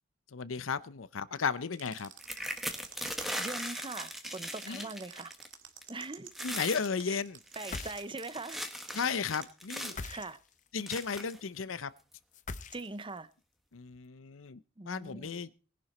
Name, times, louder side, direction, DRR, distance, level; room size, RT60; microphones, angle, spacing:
voice 1, 0.3-2.1 4.7-4.8 6.4-7.4 8.9-10.0 10.7-11.9 13.7-15.5, left 5 dB, 90° left, 0.7 m, -34 dB
sound 1, 1.7-9.5, right 10 dB, 70° right, 2.0 m, -49 dB
sound 2, 2.2-5.5 5.8-6.1 6.3-6.9 7.4-10.1 10.9-11.4 12.1-12.2 12.5-12.8, equal, ahead, 1.4 m, -39 dB
voice 2, 3.4-5.3 5.9-6.3 7.1-7.2 7.6-8.6 10.0-10.4 12.7-13.3 14.8-15.4, right 3 dB, 25° right, 0.7 m, -42 dB
sound 3, 7.6-8.4 9.8-10.7 12.3-13.2, left 3 dB, 40° left, 0.7 m, -42 dB
19.5 x 11.0 x 4.3 m
head